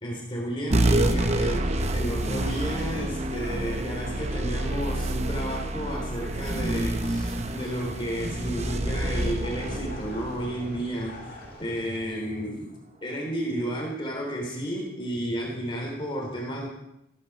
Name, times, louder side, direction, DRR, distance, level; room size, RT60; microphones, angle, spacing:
voice 1, 0.0-12.7 13.0-16.7, equal, 25° left, -1 dB, 3.3 m, -32 dB
sound 1, 0.7-11.6, right 1 dB, 35° right, 0.9 m, -28 dB
sound 2, 6.7-12.0, left 2 dB, 50° left, 2.6 m, -46 dB
15.5 x 14.0 x 4.8 m, 0.84 s
head